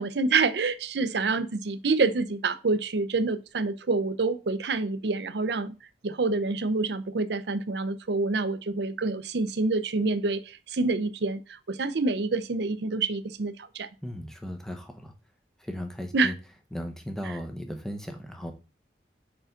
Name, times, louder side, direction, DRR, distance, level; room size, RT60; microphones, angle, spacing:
voice 1, 0.0-5.7 6.0-13.9 16.1-16.3 17.2-17.3, right 3 dB, 70° right, 0.6 m, -27 dB
voice 2, 14.0-15.1 15.6-16.4 16.7-18.5, equal, 5° left, 0.9 m, -36 dB
5.5 x 5.0 x 3.8 m
head